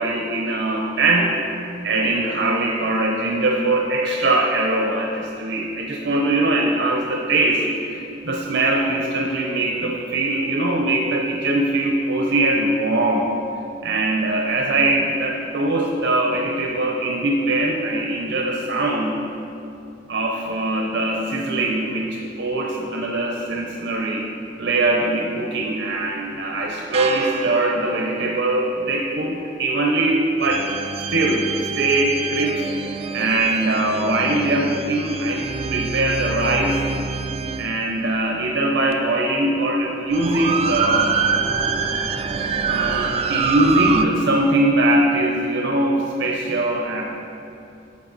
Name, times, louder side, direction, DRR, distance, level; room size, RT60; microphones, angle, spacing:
voice 1, 0.0-1.4 1.8-7.6 8.2-13.3 13.8-19.2 20.1-24.2 24.6-30.8 31.1-32.6 33.1-35.5 35.7-36.9 37.6-41.2 42.1-42.2 42.7-47.0, right 2 dB, 70° right, 0 dB, 0.8 m, -21 dB
sound 1, 26.6-28.4 30.4-37.8 38.9-39.0 40.1-44.0, right 5 dB, 35° right, 0.4 m, -26 dB
11.0 x 6.9 x 4.1 m, 2.6 s
head